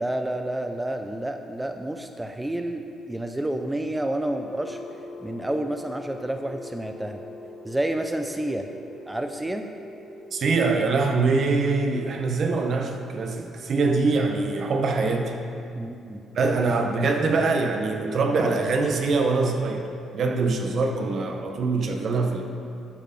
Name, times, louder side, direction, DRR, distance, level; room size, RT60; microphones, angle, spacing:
voice 1, 0.0-4.8 5.2-7.2 7.6-8.7 9.1-9.7 15.8-16.2, right 1 dB, 10° right, 5 dB, 0.5 m, -29 dB
sound 1, 4.1-17.9, left 1 dB, 35° left, 1.1 m, -45 dB
voice 2, 10.3-15.4 16.3-19.9 20.1-22.4, right 3 dB, 60° right, 4 dB, 0.9 m, -23 dB
12.5 x 4.6 x 5.2 m, 2.6 s
cardioid pair, 90°, 0 cm